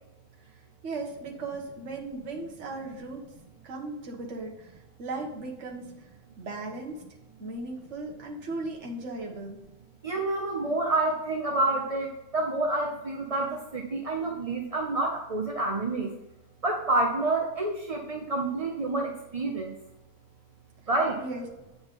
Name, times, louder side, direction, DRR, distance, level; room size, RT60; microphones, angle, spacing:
voice 1, 0.5-3.2 3.6-6.1 6.4-7.1 7.4-9.6 21.2-21.4, right 2 dB, 55° right, 0 dB, 1.4 m, -37 dB
voice 2, 10.0-16.1 16.6-19.7 20.9-21.2, right 2 dB, 35° right, 0 dB, 0.6 m, -28 dB
8.5 x 4.0 x 5.2 m, 0.96 s
omnidirectional pair, 1.6 m